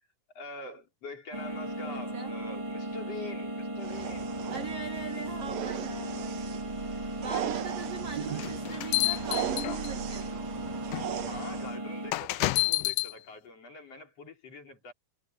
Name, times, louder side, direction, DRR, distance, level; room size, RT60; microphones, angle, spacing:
voice 1, 0.3-4.4 11.2-14.9, left 3 dB, 40° left, 5.0 m, -44 dB
sound 1, 1.3-12.1, right 1 dB, 15° right, 1.3 m, -37 dB
voice 2, 1.8-2.3 4.5-10.5, right 5 dB, 85° right, 1.3 m, -41 dB
sound 2, 3.8-11.8, right 9 dB, 60° right, 2.0 m, -38 dB
sound 3, 8.4-10.1 10.9-11.1 12.1-13.1, left 19 dB, 85° left, 1.9 m, -28 dB
omnidirectional pair, 4.5 m